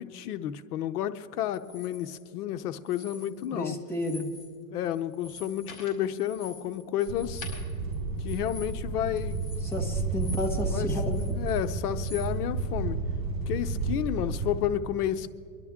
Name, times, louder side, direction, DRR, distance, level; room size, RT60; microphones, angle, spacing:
voice 1, 0.0-3.7 4.7-7.5 8.2-9.5 10.2-10.3 10.7-10.9 11.3-13.0 13.5-15.3, left 11 dB, 75° left, 11 dB, 0.8 m, -31 dB
sound 1, 1.5-2.2 2.8-3.6 3.9-4.5 4.8-10.7 11.0-12.3, left 2 dB, 50° left, 4.1 m, -47 dB
voice 2, 3.4-4.4 9.6-11.3, left 2 dB, 5° left, 0 dB, 1.1 m, -32 dB
sound 2, 7.1-14.6, right 3 dB, 35° right, 4.4 m, -31 dB
24.5 x 11.5 x 3.6 m, 2.4 s
supercardioid pair, 155°, 47 cm